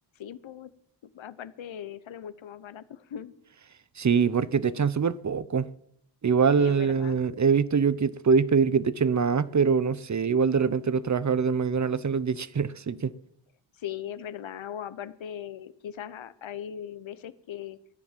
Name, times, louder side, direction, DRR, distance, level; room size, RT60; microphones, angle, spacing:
voice 1, 0.2-0.7 1.1-3.3 6.6-7.2 13.7-17.8, left 9 dB, 80° left, 1.0 m, -39 dB
voice 2, 4.0-5.7 6.2-13.1, right 6 dB, 40° right, 0.8 m, -24 dB
14.5 x 10.0 x 7.5 m
cardioid pair, 75°, 46 cm